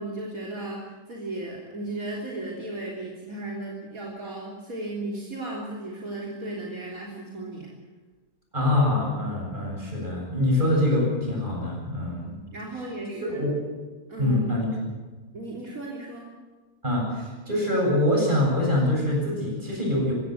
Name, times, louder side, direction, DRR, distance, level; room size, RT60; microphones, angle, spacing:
voice 1, 0.0-7.7 12.3-13.3 14.1-14.4 15.3-16.3, right 2 dB, 65° right, -3 dB, 3.8 m, -35 dB
voice 2, 8.5-12.3 13.3-13.5 14.2-14.7 16.8-20.1, left 1 dB, 30° right, -1 dB, 7.9 m, -24 dB
24.0 x 16.5 x 8.0 m, 1.3 s
omnidirectional pair, 1.6 m